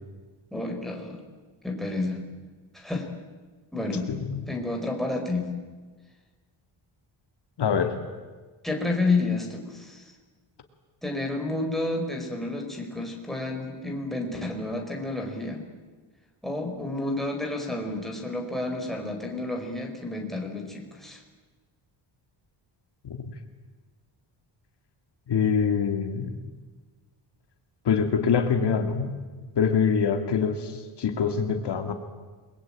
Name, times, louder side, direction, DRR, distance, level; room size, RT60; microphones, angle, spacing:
voice 1, 0.5-1.2 1.6-2.2 2.7-3.1 3.7-4.1 4.5-5.5 8.6-10.1 11.0-15.6 16.4-21.2, left 2 dB, ahead, 1 dB, 4.9 m, -30 dB
voice 2, 4.1-4.4 7.6-7.9 23.0-23.2 25.3-26.3 27.9-29.2 29.6-31.9, left 6 dB, 55° left, 6 dB, 2.4 m, -24 dB
29.5 x 22.0 x 8.9 m, 1.4 s
wide cardioid pair, 145°, 47 cm